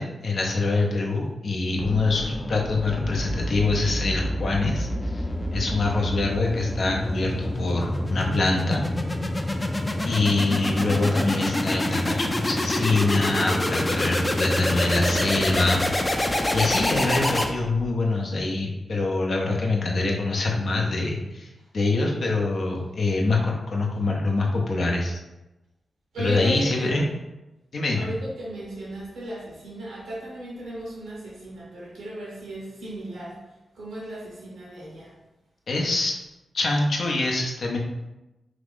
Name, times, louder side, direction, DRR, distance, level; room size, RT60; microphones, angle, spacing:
voice 1, 0.0-5.2 5.5-8.8 10.0-21.5 21.7-25.2 26.2-27.1 27.7-28.1 35.7-36.2 36.5-37.8, left 3 dB, 65° left, 0 dB, 0.7 m, -25 dB
sound 1, 1.8-17.9, left 1 dB, 25° left, 0.4 m, -27 dB
voice 2, 26.1-27.0 27.9-33.4 33.7-35.1, right 1 dB, 90° right, -5 dB, 1.0 m, -35 dB
2.9 x 2.5 x 3.5 m, 1.0 s
supercardioid pair, 45°, 0 cm